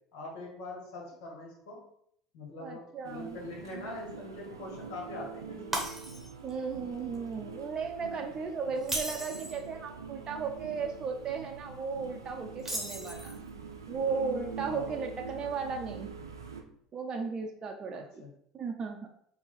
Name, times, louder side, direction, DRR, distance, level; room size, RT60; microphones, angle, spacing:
voice 1, 0.1-1.8 2.3-5.9 14.7-14.9 17.9-18.3, left 2 dB, 65° left, -1 dB, 1.8 m, -43 dB
voice 2, 2.6-3.4 6.4-13.3 13.9-16.2 16.9-18.2 18.5-19.1, right 5 dB, 35° right, 2 dB, 0.5 m, -35 dB
sound 1, 3.0-16.6, right 5 dB, 90° right, 0.5 m, -44 dB
Shatter, 5.7-6.5 6.9-7.2 8.8-9.6 12.6-13.5, right 1 dB, 10° right, 1.3 m, -36 dB
4.6 x 2.8 x 4.0 m, 0.69 s
hypercardioid pair, 70°, 2 cm